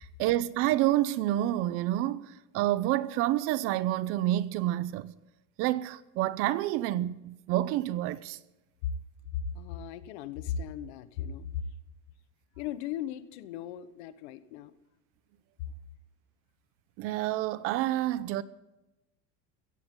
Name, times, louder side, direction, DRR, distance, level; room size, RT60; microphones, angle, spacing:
voice 1, 0.0-5.1 5.6-8.4 17.0-18.4, right 14 dB, 45° right, 0.6 m, -28 dB
voice 2, 9.3-11.5 12.6-14.7, left 8 dB, 80° left, 1.2 m, -37 dB
16.0 x 15.0 x 3.8 m
cardioid pair, 175°, 32 cm